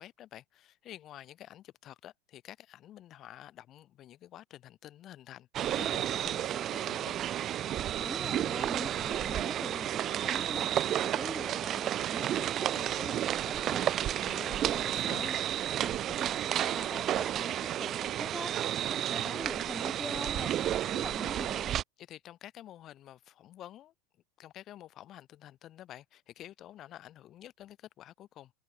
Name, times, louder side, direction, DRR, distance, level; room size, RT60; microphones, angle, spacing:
voice 1, 0.0-7.2 14.1-15.4 22.0-23.9 24.4-28.5, left 12 dB, 35° left, 2.0 m, -50 dB
sound 1, 5.5-21.8, right 11 dB, 35° right, 0.3 m, -32 dB
voice 2, 8.0-15.4 15.8-21.8, left 1 dB, 5° left, 2.8 m, -44 dB
supercardioid pair, 135°, 0 cm